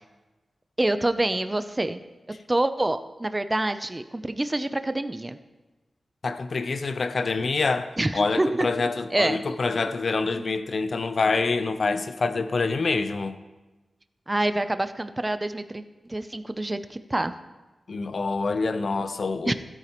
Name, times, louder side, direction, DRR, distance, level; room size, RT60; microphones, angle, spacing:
voice 1, 0.8-2.0 2.5-5.4 8.0-8.7 9.1-9.4 10.4-10.5 14.3-15.8 16.1-17.3 19.5-19.6, right 1 dB, 20° right, 0.5 m, -26 dB
voice 2, 6.2-13.4 17.9-19.5, left 4 dB, 60° left, 0.6 m, -26 dB
16.0 x 9.0 x 3.0 m
wide cardioid pair, 115°, 0 cm